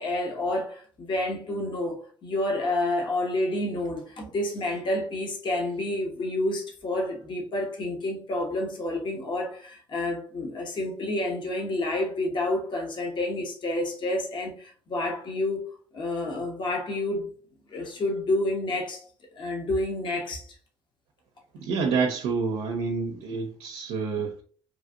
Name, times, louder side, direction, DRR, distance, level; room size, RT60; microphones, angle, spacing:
voice 1, 0.0-15.6 15.9-17.3 17.7-19.1 19.3-20.6, left 1 dB, 45° left, 1.0 m, -29 dB
voice 2, 21.6-24.4, right 5 dB, 85° right, 0.5 m, -28 dB
3.0 x 2.5 x 2.5 m
cardioid pair, 85°, 11 cm